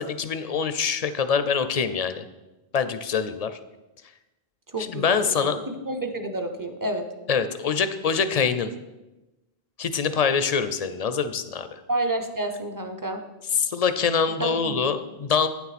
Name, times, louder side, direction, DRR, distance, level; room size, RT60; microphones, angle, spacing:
voice 1, 0.0-2.2 2.7-3.6 4.8-5.6 7.3-8.7 9.8-11.8 13.6-15.5, left 6 dB, 50° left, 11 dB, 0.5 m, -24 dB
voice 2, 4.7-7.1 11.9-13.2 14.4-14.8, right 2 dB, 25° right, 6 dB, 0.6 m, -29 dB
9.1 x 7.0 x 4.1 m, 1.0 s
omnidirectional pair, 1.0 m